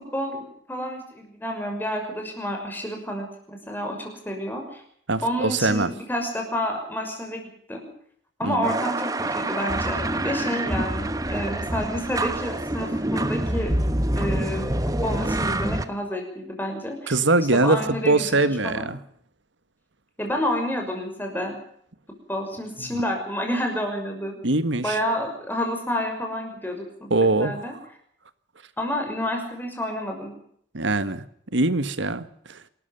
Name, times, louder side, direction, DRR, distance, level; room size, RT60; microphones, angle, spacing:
voice 1, 0.1-4.8 5.2-7.9 8.4-13.7 14.2-14.7 15.0-17.1 17.5-18.9 20.2-21.6 22.3-24.4 24.8-27.1 27.3-27.7 28.8-30.3, equal, 10° left, 3 dB, 6.1 m, -29 dB
voice 2, 5.1-5.9 8.4-8.7 17.1-19.0 22.8-23.0 24.4-25.0 27.1-27.6 30.7-31.2 31.5-32.6, right 2 dB, 80° right, 13 dB, 1.6 m, -22 dB
sound 1, 8.6-15.9, right 1 dB, 20° right, 1.2 m, -26 dB
28.0 x 13.5 x 7.1 m, 0.67 s
head